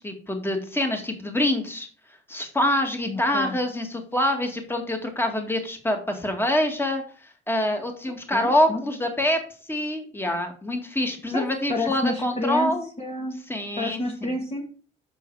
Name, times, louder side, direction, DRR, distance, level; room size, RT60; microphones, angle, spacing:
voice 1, 0.0-1.9 2.3-9.4 9.7-12.9 13.5-14.3, left 1 dB, 10° left, 4 dB, 2.0 m, -25 dB
voice 2, 3.1-3.6 8.0-8.8 10.3-10.4 11.3-12.7 13.0-13.4 13.8-14.6, left 2 dB, 30° left, 2 dB, 1.8 m, -30 dB
7.8 x 6.1 x 4.8 m, 0.39 s
cardioid pair, 90°, 20 cm